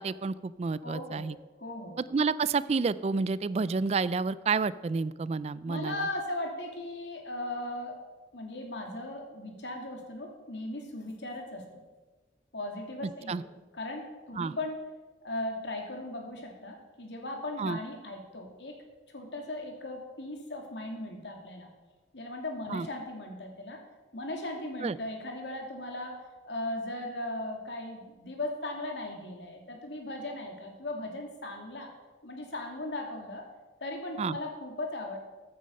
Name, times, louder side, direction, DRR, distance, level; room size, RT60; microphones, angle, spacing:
voice 1, 0.0-1.4 2.1-6.1 13.0-13.4 14.4-14.5 17.6-17.8 22.7-22.9 24.8-25.0 34.2-34.4, right 4 dB, 35° right, 18 dB, 0.3 m, -30 dB
voice 2, 0.8-1.3 1.6-2.0 5.7-8.0 8.3-11.8 12.5-14.8 15.2-18.8 19.1-21.7 22.1-23.8 24.1-31.9 32.2-33.4 33.8-35.2, left 1 dB, 90° left, 2 dB, 2.6 m, -38 dB
14.0 x 9.4 x 5.3 m, 1.2 s
head